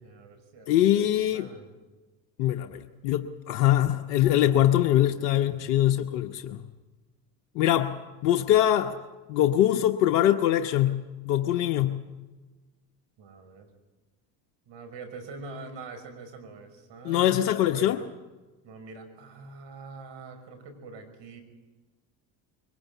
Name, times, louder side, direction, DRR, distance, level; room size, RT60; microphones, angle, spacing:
voice 1, 0.0-1.7 3.9-5.1 5.5-6.1 13.2-13.7 14.7-18.0 18.6-21.4, right 3 dB, 60° right, 7 dB, 6.0 m, -44 dB
voice 2, 0.7-1.5 2.4-6.6 7.5-8.0 8.2-9.0 9.3-12.0 17.0-18.0, left 12 dB, 80° left, 6 dB, 1.2 m, -23 dB
23.0 x 20.5 x 8.3 m, 1.2 s
hypercardioid pair, 70°, 50 cm